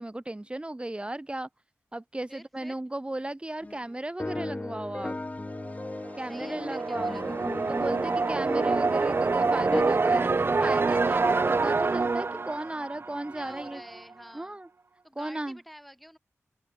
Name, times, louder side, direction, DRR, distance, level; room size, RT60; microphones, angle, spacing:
voice 1, 0.0-1.5 1.9-5.2 6.1-7.2 7.7-13.8 14.3-14.7 15.2-15.6, right 1 dB, 20° right, 3.0 m, -35 dB
voice 2, 2.3-2.8 6.3-7.4 13.4-14.6 15.0-16.2, equal, ahead, 4.2 m, -49 dB
sound 1, 3.6-3.8 4.2-9.8, left 2 dB, 30° left, 2.1 m, -37 dB
sound 2, 6.0-13.8, right 4 dB, 50° right, 0.7 m, -26 dB
open air
wide cardioid pair, 85°, 5 cm